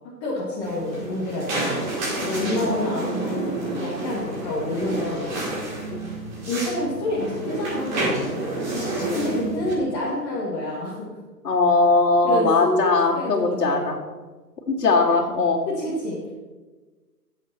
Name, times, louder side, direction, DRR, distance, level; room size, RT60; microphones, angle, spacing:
voice 1, 0.2-1.7 2.3-5.3 6.5-8.3 9.2-11.1 12.2-14.0 15.7-16.2, left 1 dB, 20° left, -8 dB, 2.1 m, -28 dB
sound 1, 0.6-9.7, right 2 dB, 25° right, 4.4 m, -29 dB
voice 2, 2.2-2.7 5.9-6.1 8.9-9.2 11.4-14.0 14.7-15.6, left 3 dB, 70° left, -5 dB, 2.7 m, -20 dB
16.5 x 8.3 x 4.4 m, 1.3 s
hypercardioid pair, 155°, 49 cm